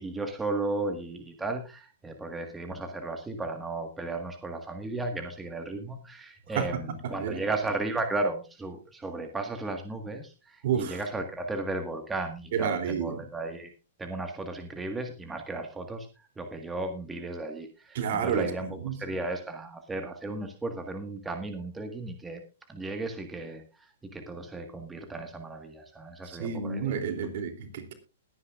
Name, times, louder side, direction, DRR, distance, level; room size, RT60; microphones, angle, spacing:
voice 1, 0.0-13.7 14.0-16.1 16.4-18.7 19.0-22.4 22.7-26.9, right 2 dB, 10° right, 1.6 m, -35 dB
voice 2, 6.5-7.4 10.6-11.0 12.5-13.2 17.9-19.0 26.2-27.9, right 7 dB, 60° right, 3.1 m, -30 dB
21.0 x 9.7 x 2.5 m
hypercardioid pair, 135°, 0 cm